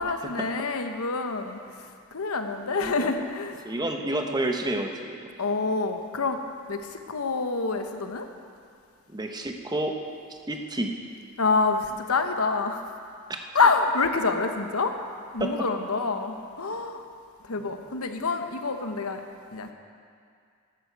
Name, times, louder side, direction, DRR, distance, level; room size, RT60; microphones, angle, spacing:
voice 1, 0.0-1.6 2.1-3.5 5.4-6.4 6.7-8.3 11.4-12.9 13.5-14.9 15.3-17.0 17.5-19.2 19.5-19.7, left 4 dB, 70° left, 6 dB, 1.0 m, -27 dB
voice 2, 2.7-3.1 3.6-5.3 9.1-9.9 10.5-10.9 15.4-15.7 17.6-17.7, right 1 dB, 20° right, 3 dB, 0.9 m, -30 dB
13.5 x 12.0 x 4.7 m, 2.3 s
head